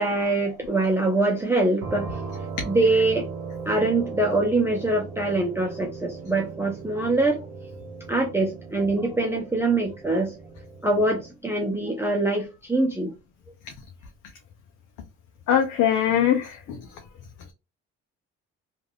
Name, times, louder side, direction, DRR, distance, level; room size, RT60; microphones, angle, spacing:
voice 1, 0.0-2.2 2.6-3.3 3.7-7.4 8.1-10.3 10.8-13.1, right 2 dB, 10° right, 0.6 m, -24 dB
sound 1, 1.8-11.3, right 4 dB, 80° right, 0.7 m, -38 dB
voice 2, 15.5-16.9, left 9 dB, 80° left, 0.6 m, -22 dB
3.3 x 2.5 x 2.3 m
cardioid pair, 90°, 30 cm